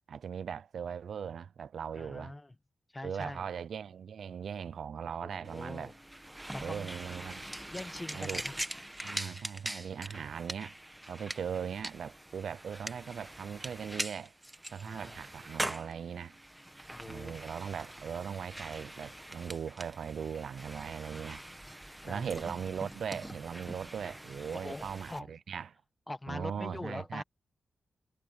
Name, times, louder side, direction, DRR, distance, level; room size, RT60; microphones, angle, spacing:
voice 1, 0.1-2.4 3.0-5.9 6.6-7.5 8.1-8.4 9.0-10.8 11.1-14.3 14.7-16.4 17.1-21.4 22.0-25.7 26.3-27.2, right 7 dB, 80° right, 0.5 m, -39 dB
voice 2, 1.9-2.5 2.9-3.5 5.1-5.9 6.5-6.9 7.7-8.6 14.8-15.2 16.9-17.4 22.0-22.5 24.5-25.3 26.1-27.2, left 2 dB, 20° left, 1.4 m, -43 dB
sound 1, 5.4-25.2, right 1 dB, 10° right, 1.3 m, -43 dB
cardioid pair, 65°, 0 cm